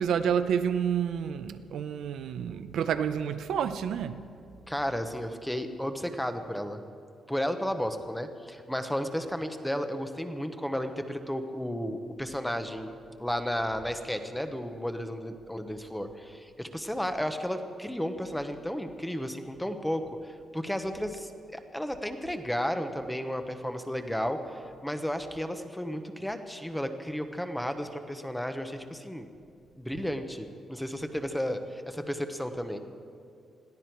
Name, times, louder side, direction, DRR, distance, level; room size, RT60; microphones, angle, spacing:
voice 1, 0.0-4.2, right 8 dB, 75° right, 10 dB, 0.6 m, -29 dB
voice 2, 4.7-6.8 7.3-12.9 13.2-29.3 29.8-32.8, equal, 5° left, 7 dB, 0.8 m, -33 dB
21.5 x 14.5 x 4.6 m, 2.4 s
wide cardioid pair, 175°, 0 cm